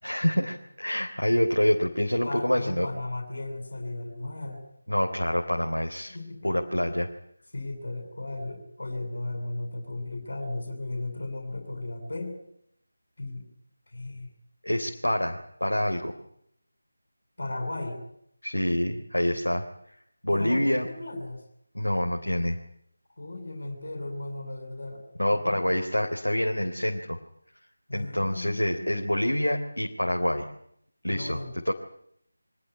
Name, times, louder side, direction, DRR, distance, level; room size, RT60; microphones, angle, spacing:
voice 1, 0.0-2.9 4.9-6.1 6.4-7.1 14.6-16.1 18.4-19.6 20.2-20.9 21.7-22.6 25.2-27.2 27.9-30.4 31.0-31.4 31.6-31.7, left 1 dB, 85° left, 2 dB, 3.5 m, -26 dB
voice 2, 2.2-4.6 6.1-6.6 7.5-12.4 13.2-13.5 13.9-14.3 17.4-18.0 20.3-21.4 23.2-25.0 25.3-25.8 27.9-29.1 31.1-31.5, left 2 dB, 55° left, 4 dB, 7.7 m, -36 dB
24.0 x 19.0 x 9.6 m, 0.70 s
figure-of-eight pair, 165°, 0 cm